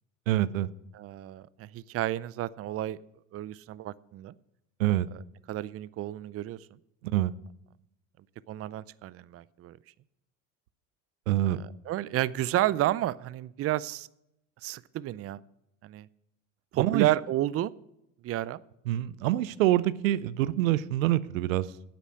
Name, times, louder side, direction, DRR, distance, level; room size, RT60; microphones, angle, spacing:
voice 1, 0.3-0.7 4.8-5.1 7.1-7.3 11.3-11.6 16.8-17.1 18.9-21.7, right 14 dB, 85° right, 17 dB, 0.6 m, -25 dB
voice 2, 0.9-3.0 3.3-4.3 5.5-6.6 8.5-9.8 11.4-14.1 14.6-15.4 15.8-16.1 16.7-17.7 18.2-18.6, right 14 dB, 35° right, 19 dB, 0.5 m, -31 dB
10.5 x 8.3 x 6.3 m, 0.81 s
hypercardioid pair, 75°, 39 cm